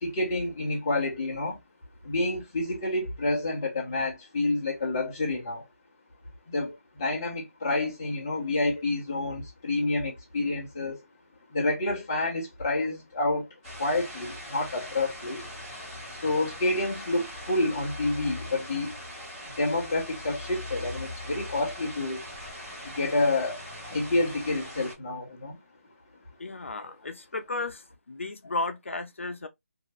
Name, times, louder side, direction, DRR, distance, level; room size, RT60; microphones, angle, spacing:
voice 1, 0.0-1.6 2.0-5.6 6.5-11.0 11.5-13.5 13.8-15.5 16.1-19.0 19.6-22.2 22.8-25.6, left 2 dB, 10° left, 0.6 m, -29 dB
sound 1, 13.6-24.9, left 1 dB, 5° right, 1.1 m, -41 dB
voice 2, 26.4-29.5, left 2 dB, 55° left, 0.6 m, -34 dB
2.7 x 2.4 x 3.0 m
figure-of-eight pair, 180°, 8 cm